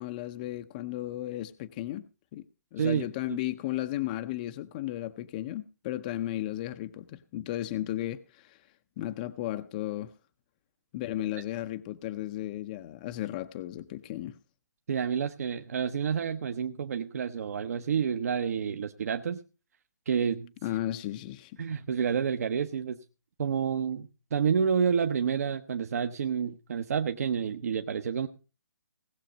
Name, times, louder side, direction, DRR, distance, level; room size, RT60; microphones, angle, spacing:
voice 1, 0.0-2.0 2.3-2.4 2.7-8.6 9.0-10.1 10.9-14.3 20.6-21.6, left 14 dB, 30° left, 0.6 m, -34 dB
voice 2, 2.8-3.4 14.9-19.4 20.1-20.5 21.6-23.0 23.4-28.3, right 7 dB, 60° right, 0.9 m, -29 dB
18.5 x 6.9 x 5.1 m
hypercardioid pair, 150°, 9 cm